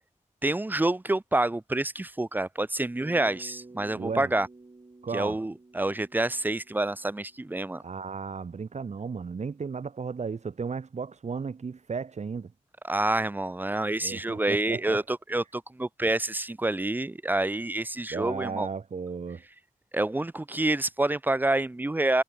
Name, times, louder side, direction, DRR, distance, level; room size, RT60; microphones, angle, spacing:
voice 1, 0.4-4.5 5.1-7.8 12.8-18.7 19.9-22.2, right 2 dB, 15° right, 0.4 m, -27 dB
Bass guitar, 3.0-7.4, right 3 dB, 35° right, 2.2 m, -51 dB
voice 2, 3.9-4.3 5.0-5.4 7.8-12.5 14.0-15.0 18.1-19.4, right 5 dB, 55° right, 0.7 m, -34 dB
wide cardioid pair, 70°, 14 cm